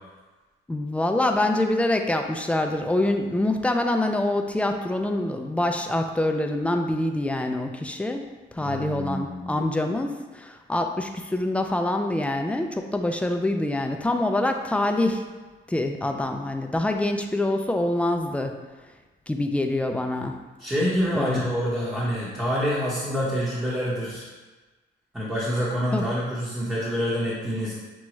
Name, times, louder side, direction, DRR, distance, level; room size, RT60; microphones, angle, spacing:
voice 1, 0.7-15.2 15.7-18.5 19.3-20.3 21.1-21.4 25.9-26.1, left 1 dB, 5° left, 4 dB, 0.4 m, -25 dB
voice 2, 8.6-9.6 20.6-24.3 25.1-27.7, equal, 10° right, -9 dB, 1.0 m, -27 dB
6.1 x 2.3 x 3.1 m, 1.3 s
cardioid pair, 90°, 20 cm